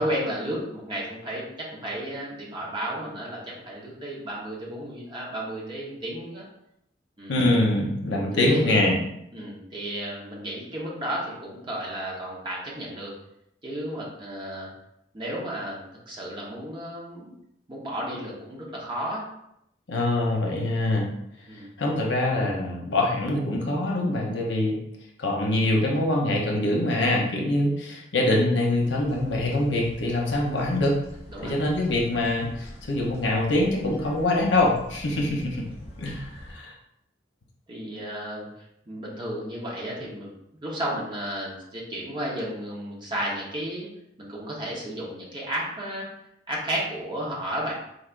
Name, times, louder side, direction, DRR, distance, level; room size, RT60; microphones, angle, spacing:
voice 1, 0.0-6.5 7.2-7.4 8.3-8.9 9.3-13.1 13.6-14.7 15.1-17.3 17.7-19.2 21.5-21.7 31.3-31.5 35.2-35.3 37.7-40.3 40.6-43.9 44.2-46.1 46.5-47.7, right 1 dB, 25° right, -4 dB, 1.0 m, -33 dB
voice 2, 7.3-9.0 19.9-21.1 21.5-24.8 25.2-31.0 31.4-35.6 36.0-36.7, left 1 dB, 70° left, -1 dB, 0.9 m, -24 dB
sound 1, 28.8-36.5, equal, 35° left, 1.0 m, -44 dB
4.0 x 3.4 x 2.5 m, 0.78 s
head